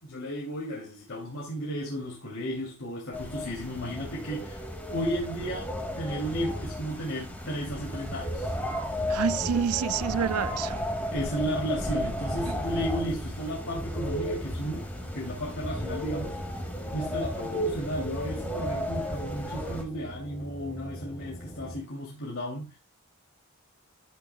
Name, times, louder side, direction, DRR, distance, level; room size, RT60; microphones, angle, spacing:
voice 1, 0.0-8.5 11.1-16.4 16.9-22.8, equal, 60° left, 2.8 m, -34 dB
sound 1, 3.1-19.8, equal, 10° left, 2.0 m, -33 dB
voice 2, 9.1-10.8 12.5-12.6, right 7 dB, 80° right, 0.4 m, -28 dB
sound 2, 11.6-21.8, equal, 25° left, 2.3 m, -43 dB
12.5 x 9.4 x 2.3 m
head